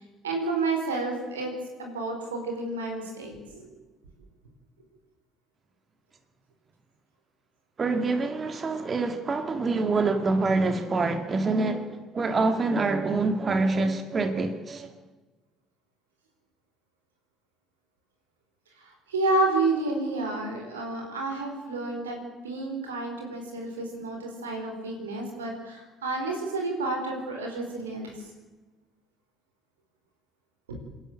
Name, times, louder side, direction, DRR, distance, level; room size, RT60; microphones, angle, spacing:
voice 1, 0.2-1.5 1.8-3.7 18.8-22.2 22.4-28.1 30.7-30.8, right 2 dB, 90° right, 4.2 m, -30 dB
voice 2, 7.8-14.9, right 3 dB, 35° right, 2.1 m, -26 dB
27.0 x 11.0 x 8.8 m
hypercardioid pair, 55°, 0 cm